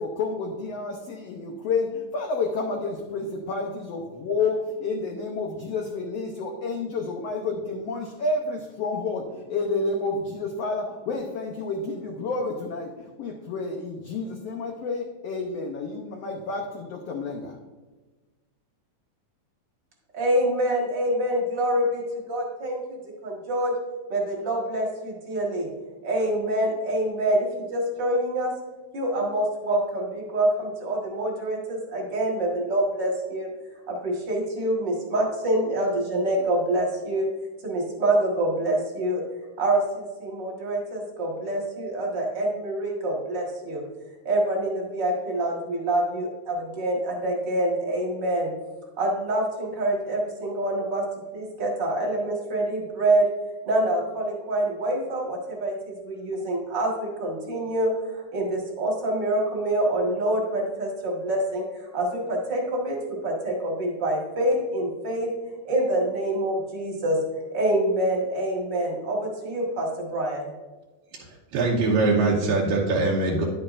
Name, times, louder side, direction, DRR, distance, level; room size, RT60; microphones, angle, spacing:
voice 1, 0.0-17.6, left 3 dB, 90° left, 2 dB, 1.3 m, -30 dB
voice 2, 20.1-23.7 24.1-25.7 26.0-28.5 28.9-33.5 33.9-37.3 37.6-39.2 39.6-43.8 44.2-48.5 49.0-51.0 51.3-53.3 53.7-65.3 65.6-67.2 67.5-70.5, right 1 dB, 45° right, -1 dB, 1.6 m, -26 dB
voice 3, 71.1-73.5, right 3 dB, 80° right, -3 dB, 2.6 m, -23 dB
10.5 x 8.5 x 2.5 m, 1.2 s
omnidirectional pair, 3.9 m